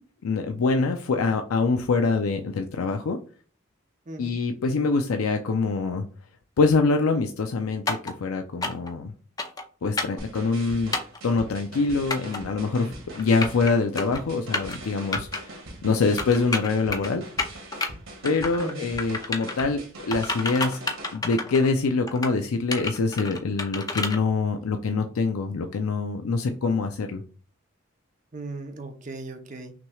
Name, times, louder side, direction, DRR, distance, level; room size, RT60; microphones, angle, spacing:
voice 1, 0.2-3.2 4.2-6.0 6.6-9.1 9.8-11.0 11.2-17.2 18.2-20.8 21.1-27.2, left 4 dB, 90° left, 5 dB, 0.5 m, -25 dB
sound 1, 7.9-8.1 8.6-8.9 9.4-9.6 10.0-10.2 10.9-11.2 12.1-12.4 13.2-13.7 14.0-14.2 14.5-14.8 15.1-15.4 16.2-17.1 17.4-17.9 18.2-18.7 19.0-19.6 20.1-21.7 22.1-22.3 22.7-24.2, left 3 dB, 15° left, 0.5 m, -29 dB
sound 2, 10.2-21.1, right 1 dB, 70° right, 1.7 m, -42 dB
voice 2, 18.6-18.9 28.3-29.7, right 2 dB, 35° right, 6 dB, 0.7 m, -37 dB
5.9 x 3.1 x 2.3 m, 0.41 s
head